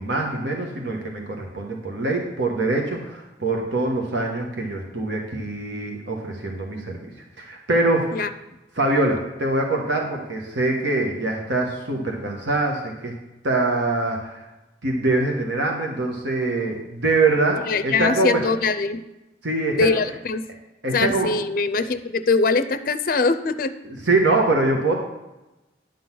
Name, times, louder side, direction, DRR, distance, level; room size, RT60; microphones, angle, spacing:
voice 1, 0.0-7.1 7.4-8.3 8.7-13.1 13.4-14.4 14.8-18.4 19.4-20.0 20.8-21.3 23.8-24.9, right 2 dB, 80° right, 1 dB, 1.2 m, -24 dB
voice 2, 17.7-19.0 19.7-20.4 20.9-23.7, left 4 dB, 50° left, 12 dB, 0.4 m, -22 dB
10.5 x 3.9 x 7.5 m, 0.99 s
head